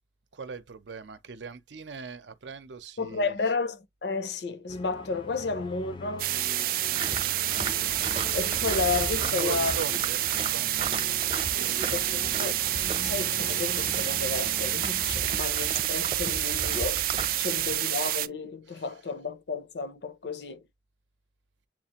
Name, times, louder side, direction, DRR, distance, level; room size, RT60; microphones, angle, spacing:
voice 1, 0.3-3.4 9.2-10.9 11.5-12.1 18.7-19.0, right 5 dB, 80° right, 0.7 m, -41 dB
voice 2, 3.0-6.3 8.2-9.8 11.5-20.6, left 4 dB, 70° left, 0.6 m, -32 dB
sound 1, 4.7-15.4, left 3 dB, 25° left, 0.4 m, -42 dB
sound 2, 6.2-18.3, right 14 dB, 50° right, 0.3 m, -28 dB
sound 3, 6.9-17.7, right 3 dB, 30° right, 0.7 m, -37 dB
7.3 x 2.5 x 2.9 m
head